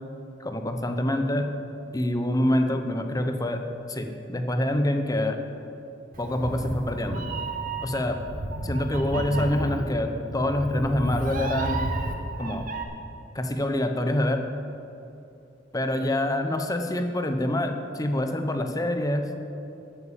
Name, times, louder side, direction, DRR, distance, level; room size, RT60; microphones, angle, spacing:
voice 1, 0.4-1.5 1.9-3.6 3.9-5.4 6.2-7.2 7.8-8.2 8.6-11.9 12.4-12.7 13.3-14.4 15.7-19.2, left 1 dB, 20° left, 6 dB, 0.9 m, -26 dB
Meow, 6.1-12.8, right 2 dB, 45° right, 1.2 m, -32 dB
12.0 x 8.4 x 7.4 m, 2.7 s
head